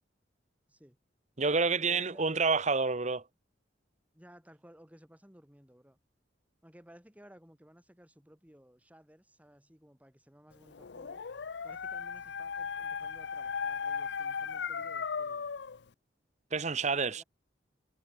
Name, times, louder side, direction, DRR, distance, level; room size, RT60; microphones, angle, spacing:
voice 1, 0.7-1.0 1.9-2.3 4.1-6.0 6.6-11.2 11.6-15.5 16.8-17.2, equal, 10° right, 4.1 m, -57 dB
voice 2, 1.4-3.2 16.5-17.2, right 4 dB, 40° right, 1.0 m, -28 dB
Dog, 10.7-15.8, left 6 dB, 60° left, 0.6 m, -37 dB
head